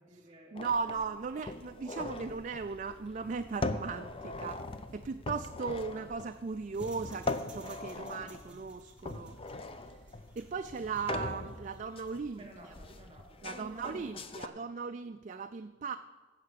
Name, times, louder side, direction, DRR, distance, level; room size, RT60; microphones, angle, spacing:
voice 1, 0.0-1.0 1.5-1.6 12.4-14.5, equal, 25° right, 0 dB, 2.9 m, -54 dB
voice 2, 0.5-4.6 4.9-10.0 10.4-12.5 13.4-16.0, right 5 dB, 40° right, 8 dB, 0.3 m, -37 dB
sound 1, 0.6-14.5, left 2 dB, 30° left, 0.5 m, -41 dB
sound 2, 6.1-12.3, right 2 dB, 5° right, 1.5 m, -57 dB
16.0 x 5.7 x 7.6 m, 1.4 s
head